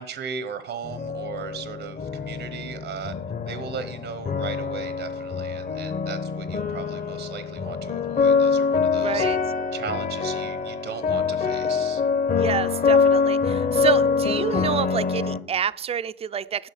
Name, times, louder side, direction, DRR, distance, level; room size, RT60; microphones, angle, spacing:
voice 1, 0.0-3.1 3.5-9.3 9.7-12.0, right 7 dB, 75° right, 12 dB, 1.0 m, -37 dB
sound 1, 0.8-15.4, left 5 dB, 45° left, 1.1 m, -24 dB
voice 2, 9.0-9.4 12.4-16.7, right 8 dB, 30° right, 15 dB, 0.4 m, -28 dB
11.0 x 6.1 x 7.1 m, 0.66 s
cardioid pair, 90°, 20 cm